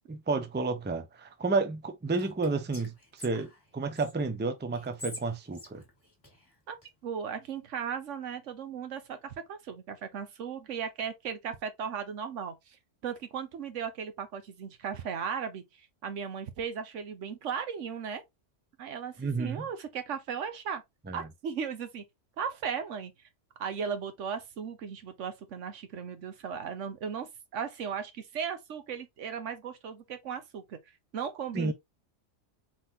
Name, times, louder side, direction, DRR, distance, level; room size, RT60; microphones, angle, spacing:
voice 1, 0.1-5.8 19.2-19.7 21.1-21.3 31.5-31.7, right 3 dB, 15° right, 0.4 m, -31 dB
Whispering, 2.1-4.1 4.7-6.9, left 1 dB, 20° left, 1.8 m, -47 dB
voice 2, 7.0-12.8 13.0-18.2 18.8-20.8 21.1-22.0 22.4-23.1 23.6-30.8 31.1-31.7, right 7 dB, 80° right, 1.2 m, -36 dB
4.2 x 3.8 x 2.7 m
omnidirectional pair, 1.3 m